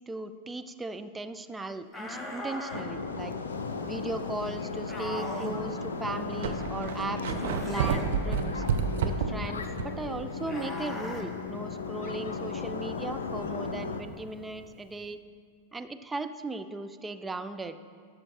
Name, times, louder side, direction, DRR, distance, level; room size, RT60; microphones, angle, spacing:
voice 1, 0.1-3.4 3.8-8.6 9.0-15.2 15.7-17.8, right 2 dB, 10° right, 9 dB, 0.4 m, -37 dB
sound 1, 1.9-2.9 4.9-5.6 7.3-8.1 10.4-11.2, left 1 dB, 15° left, 1.1 m, -38 dB
sound 2, 2.7-14.0, left 4 dB, 70° left, 0.6 m, -36 dB
sound 3, 3.9-4.1 4.8-4.9 5.8-5.9 6.1-10.1 10.4-10.5 14.1-14.2, right 7 dB, 60° right, 0.7 m, -30 dB
12.0 x 6.4 x 4.4 m, 2.1 s
figure-of-eight pair, 90°, 0 cm